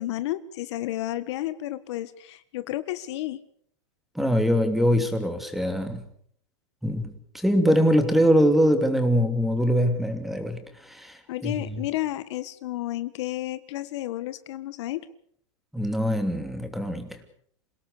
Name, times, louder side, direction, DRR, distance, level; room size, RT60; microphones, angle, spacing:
voice 1, 0.0-3.4 11.3-15.1, left 15 dB, 65° left, 1.5 m, -31 dB
voice 2, 4.1-6.1 6.8-11.8 15.7-17.2, equal, ahead, 2.9 m, -23 dB
28.0 x 17.5 x 6.7 m
supercardioid pair, 135°, 16 cm